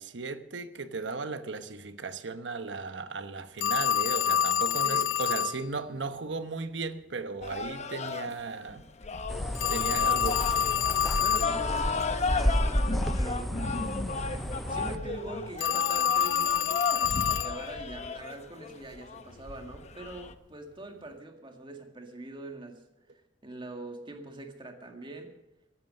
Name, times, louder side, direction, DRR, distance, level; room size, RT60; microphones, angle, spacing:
voice 1, 0.0-8.8 9.7-10.4, right 4 dB, 75° right, 1.0 m, -36 dB
Telephone, 3.6-5.6 9.6-11.6 15.6-17.6, left 9 dB, 80° left, 0.4 m, -27 dB
sound 1, 7.4-20.3, left 4 dB, 40° left, 0.8 m, -35 dB
sound 2, 9.3-15.0, equal, ahead, 0.4 m, -31 dB
voice 2, 11.0-13.5 14.7-22.8 23.4-25.3, right 2 dB, 25° right, 1.9 m, -43 dB
15.0 x 11.0 x 6.5 m
head